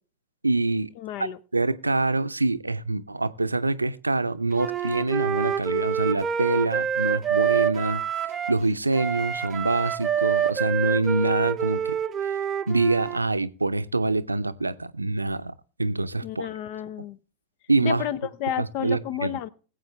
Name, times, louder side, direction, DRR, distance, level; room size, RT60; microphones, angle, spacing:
voice 1, 0.4-0.9 1.2-1.3 1.5-8.0 8.5-12.0 12.2-12.4 12.7-16.5 17.7-18.1 18.6-19.3, right 2 dB, 80° right, 0.5 m, -25 dB
voice 2, 1.0-1.4 16.2-17.2 17.8-19.5, left 11 dB, 45° left, 0.7 m, -31 dB
Wind instrument woodwind instrument, 4.5-8.6 8.9-13.2, right 8 dB, 25° right, 0.6 m, -27 dB
21.0 x 7.8 x 3.3 m
figure-of-eight pair, 90°, 0 cm